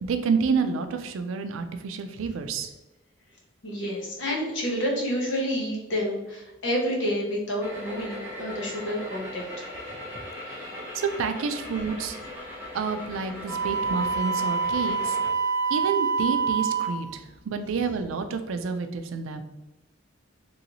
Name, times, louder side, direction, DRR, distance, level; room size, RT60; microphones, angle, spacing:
voice 1, 0.0-2.7 10.9-12.2 12.7-15.2 15.7-19.4, right 5 dB, 90° right, 8 dB, 0.4 m, -29 dB
voice 2, 3.6-9.4, equal, 70° left, -2 dB, 0.9 m, -29 dB
sound 1, 7.6-15.3, left 1 dB, 10° right, 0.8 m, -39 dB
Wind instrument woodwind instrument, 13.5-17.0, right 5 dB, 55° right, 0.8 m, -26 dB
3.0 x 2.7 x 2.8 m, 1.0 s
head